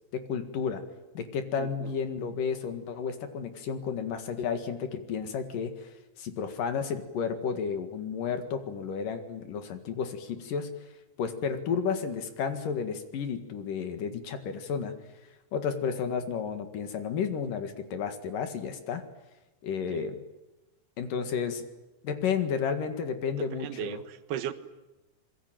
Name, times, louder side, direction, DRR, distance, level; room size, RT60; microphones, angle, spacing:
voice 1, 0.1-0.8 1.1-5.9 6.2-10.7 11.2-14.9 15.5-19.0 19.6-20.2 21.0-21.7 22.0-24.0, left 6 dB, 60° left, 8 dB, 3.3 m, -32 dB
voice 2, 1.6-2.0 19.9-20.1 23.4-24.5, right 10 dB, 75° right, 10 dB, 3.3 m, -37 dB
25.5 x 22.5 x 9.2 m, 1.0 s
omnidirectional pair, 4.7 m